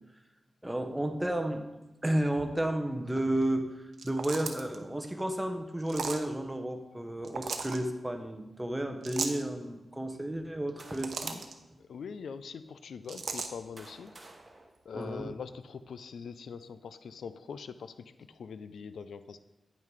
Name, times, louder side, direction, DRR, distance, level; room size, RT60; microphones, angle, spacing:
voice 1, 0.6-1.6 2.0-11.4 14.9-15.3, right 1 dB, 10° right, 5 dB, 0.9 m, -32 dB
sound 1, 3.9-4.8 5.9-6.3 7.2-7.8 9.0-9.4 10.7-11.5 13.1-13.5, right 5 dB, 75° right, 0.8 m, -36 dB
sound 2, 10.5-11.5 12.2-12.3 13.2-15.6, right 2 dB, 30° right, 1.1 m, -55 dB
voice 2, 11.8-14.1 14.8-19.4, left 6 dB, 90° left, 12 dB, 0.4 m, -43 dB
9.2 x 5.6 x 4.7 m, 1.1 s
wide cardioid pair, 110°, 0 cm